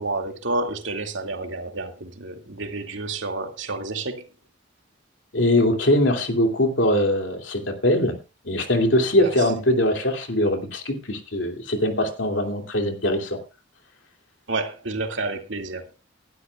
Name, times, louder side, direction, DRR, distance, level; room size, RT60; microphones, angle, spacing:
voice 1, 0.0-4.3 9.1-9.3 14.5-15.9, right 2 dB, 80° right, 2.3 m, -30 dB
voice 2, 5.3-8.2 8.4-13.4, left 1 dB, 75° left, 2.6 m, -22 dB
19.5 x 12.5 x 2.4 m
head